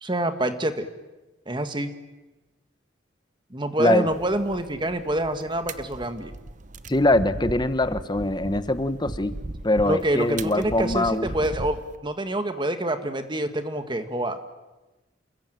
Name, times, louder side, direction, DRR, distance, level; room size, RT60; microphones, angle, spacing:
voice 1, 0.0-0.9 1.5-1.9 3.5-6.3 9.8-14.4, right 1 dB, 25° right, 8 dB, 1.7 m, -26 dB
sound 1, 4.1-12.0, right 2 dB, 45° right, 1.0 m, -38 dB
voice 2, 6.9-9.3 9.6-11.3, left 2 dB, 25° left, 12 dB, 1.1 m, -23 dB
28.5 x 22.0 x 9.2 m, 1.1 s
head